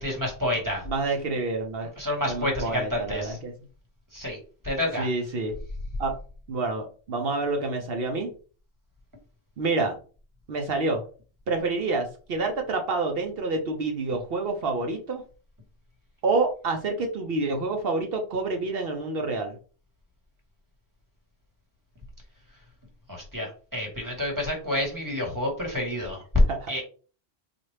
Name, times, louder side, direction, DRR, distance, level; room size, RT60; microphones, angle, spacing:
voice 1, 0.0-0.8 2.0-3.4 4.1-4.4 4.6-5.1 23.1-26.2 26.7-26.8, left 1 dB, 20° right, 0 dB, 1.2 m, -29 dB
voice 2, 0.9-1.9 2.2-3.5 5.0-5.5 6.0-6.2 6.5-8.3 9.6-10.0 10.5-11.0 11.5-15.2 16.2-19.5 26.5-26.7, right 3 dB, 65° right, 3 dB, 0.8 m, -28 dB
4.2 x 2.4 x 3.2 m, 0.38 s
omnidirectional pair, 1.1 m